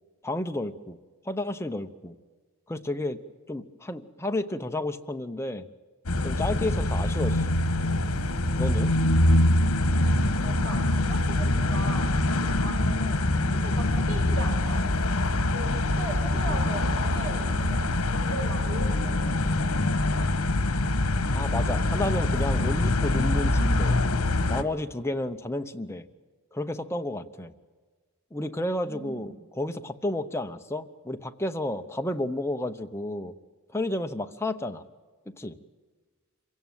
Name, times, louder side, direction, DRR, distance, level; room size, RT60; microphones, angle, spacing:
voice 1, 0.2-1.0 1.2-2.1 2.7-3.2 3.5-5.7 6.2-7.5 8.6-9.0 21.3-24.0 24.5-26.0 26.5-27.5 28.3-33.3 33.7-34.8 35.4-35.6, left 1 dB, 10° left, 6 dB, 0.9 m, -31 dB
sound 1, 6.1-24.6, left 1 dB, 80° left, 1.4 m, -24 dB
voice 2, 10.3-13.2 13.5-14.8 15.5-19.7 28.8-29.3, right 1 dB, 70° right, 2 dB, 6.5 m, -38 dB
26.0 x 16.5 x 9.2 m, 1.4 s
head